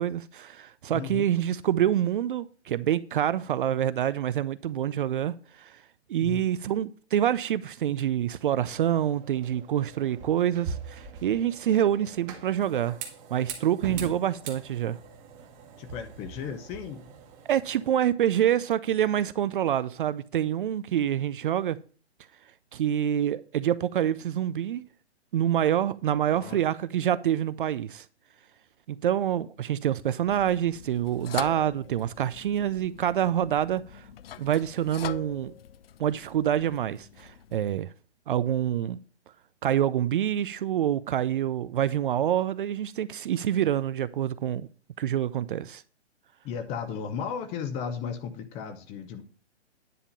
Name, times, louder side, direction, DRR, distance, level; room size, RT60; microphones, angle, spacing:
voice 1, 0.0-5.8 6.1-13.0 13.3-15.0 17.5-21.8 22.7-24.8 25.3-28.1 28.9-34.1 34.4-35.5 36.0-37.9 38.3-39.0 39.6-44.7 45.0-45.8, right 10 dB, 50° right, 0.4 m, -26 dB
voice 2, 0.9-1.3 6.2-6.5 15.8-17.1 26.1-26.6 46.4-49.2, left 7 dB, 15° left, 0.7 m, -35 dB
sound 1, 8.6-17.9, right 6 dB, 25° right, 1.3 m, -42 dB
sound 2, 30.3-37.6, left 10 dB, 60° left, 0.6 m, -43 dB
10.0 x 3.6 x 7.1 m
hypercardioid pair, 145°, 34 cm